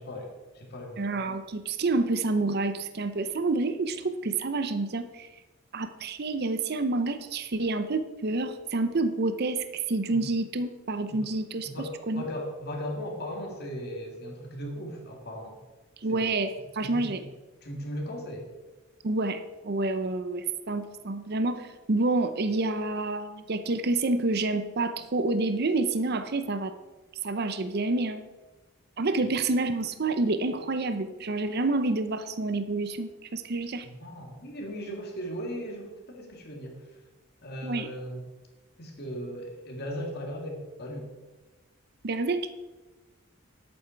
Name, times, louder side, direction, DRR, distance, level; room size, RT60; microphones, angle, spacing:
voice 1, 0.0-1.2 10.1-10.2 11.1-11.2 11.6-15.6 16.1-16.2 16.8-17.3 17.6-18.5 29.2-29.3 33.8-36.8 37.4-38.2 38.8-41.1, equal, 50° left, 1 dB, 2.3 m, -37 dB
voice 2, 1.0-5.3 5.7-11.7 12.1-12.2 16.0-17.2 19.0-26.7 27.2-28.2 29.0-33.9 37.6-37.9 42.0-42.5, right 3 dB, 50° right, 10 dB, 0.7 m, -28 dB
11.0 x 8.7 x 4.5 m, 1.2 s
head